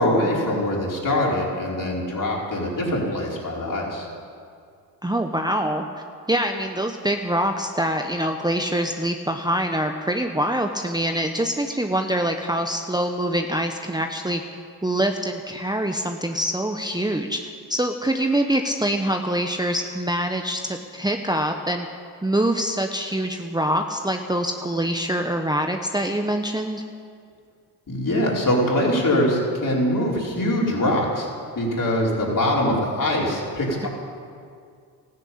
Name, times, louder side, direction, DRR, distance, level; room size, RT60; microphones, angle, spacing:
voice 1, 0.0-4.1 27.9-31.3 31.5-33.9, left 1 dB, 45° left, -4 dB, 5.1 m, -23 dB
voice 2, 5.0-5.8 6.3-14.4 14.8-17.4 17.7-21.9 22.2-26.8, right 1 dB, 10° right, 4 dB, 1.1 m, -24 dB
14.0 x 11.0 x 8.7 m, 2.2 s
supercardioid pair, 50°, 45 cm